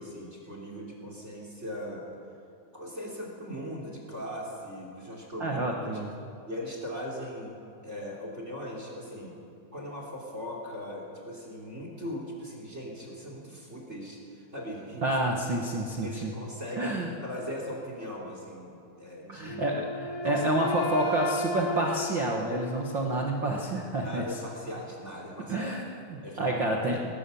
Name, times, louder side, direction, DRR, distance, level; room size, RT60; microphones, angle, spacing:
voice 1, 0.0-2.0 2.7-6.0 6.5-9.3 9.7-15.1 15.5-15.6 16.0-19.6 20.2-20.4 20.8-21.1 24.0-25.7 26.2-27.0, equal, 20° right, -1 dB, 3.0 m, -39 dB
voice 2, 5.4-6.1 15.0-16.3 16.8-17.1 19.3-24.2 25.5-27.0, right 1 dB, 90° right, 0 dB, 1.0 m, -29 dB
Wind instrument woodwind instrument, 19.4-23.4, left 2 dB, 75° left, 3.6 m, -35 dB
20.0 x 18.5 x 7.1 m, 2.6 s
omnidirectional pair, 4.7 m